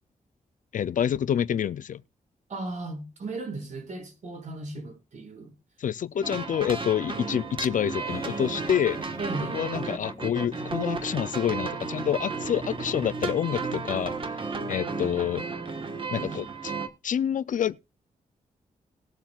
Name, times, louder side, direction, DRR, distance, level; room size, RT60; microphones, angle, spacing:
voice 1, 0.7-2.0 5.8-9.0 9.5-14.1 14.7-15.5 16.1-16.7 17.0-17.8, left 9 dB, 70° left, 0.5 m, -27 dB
voice 2, 2.5-5.5 9.2-9.6, right 3 dB, 60° right, 6.4 m, -36 dB
sound 1, 6.2-16.9, right 4 dB, 40° right, 1.5 m, -33 dB
sound 2, 8.0-16.9, right 1 dB, 20° right, 4.0 m, -46 dB
19.5 x 7.3 x 2.4 m
cardioid pair, 80°, 14 cm